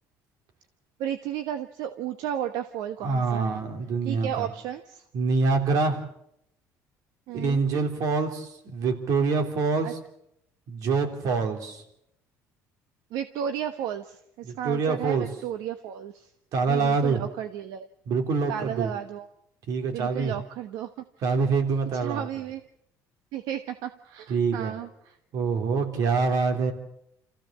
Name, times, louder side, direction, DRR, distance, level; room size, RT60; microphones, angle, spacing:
voice 1, 1.0-3.6 4.0-5.0 7.3-7.7 9.8-9.9 13.1-16.3 16.7-17.9 18.5-19.3 19.9-20.9 21.9-22.6 23.3-25.2, right 10 dB, 85° right, 9 dB, 1.1 m, -33 dB
voice 2, 3.0-4.5 5.1-6.0 7.3-9.9 10.7-11.8 14.4-15.3 16.5-17.2 18.1-18.9 19.7-20.3 21.2-22.3 24.3-24.7 25.3-26.7, right 4 dB, 65° right, 5 dB, 3.4 m, -25 dB
27.0 x 15.0 x 7.5 m, 0.78 s
cardioid pair, 130°, 6 cm